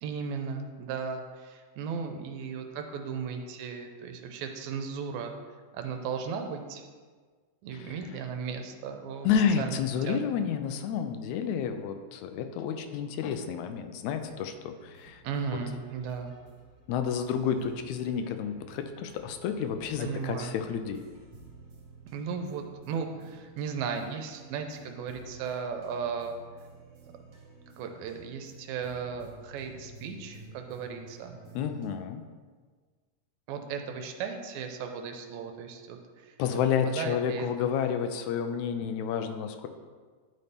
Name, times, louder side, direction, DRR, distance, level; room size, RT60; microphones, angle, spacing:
voice 1, 0.0-5.3 5.7-6.8 7.6-9.3 9.6-9.8 10.1-10.2 15.2-16.3 20.0-20.6 22.1-26.3 27.8-31.4 33.5-36.4 36.9-37.5, right 6 dB, 85° right, 5 dB, 2.0 m, -36 dB
voice 2, 9.2-15.2 16.9-21.0 31.6-32.2 36.4-39.7, left 7 dB, 80° left, 8 dB, 1.9 m, -30 dB
sound 1, 14.2-31.9, right 3 dB, 60° right, 2.1 m, -52 dB
10.5 x 4.2 x 3.4 m, 1.5 s
omnidirectional pair, 3.3 m